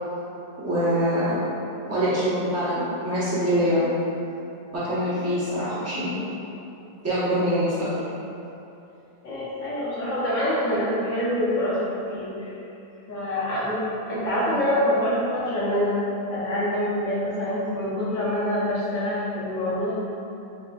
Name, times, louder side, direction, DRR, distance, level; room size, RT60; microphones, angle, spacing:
voice 1, 0.6-1.4 1.9-3.9 4.7-6.1 7.0-7.9, equal, 15° right, -11 dB, 0.7 m, -24 dB
voice 2, 9.2-11.8 12.1-12.6 13.1-13.8 14.1-16.0 16.3-19.9, left 1 dB, 55° left, -9 dB, 1.3 m, -25 dB
3.8 x 3.5 x 2.4 m, 2.9 s
omnidirectional pair, 1.6 m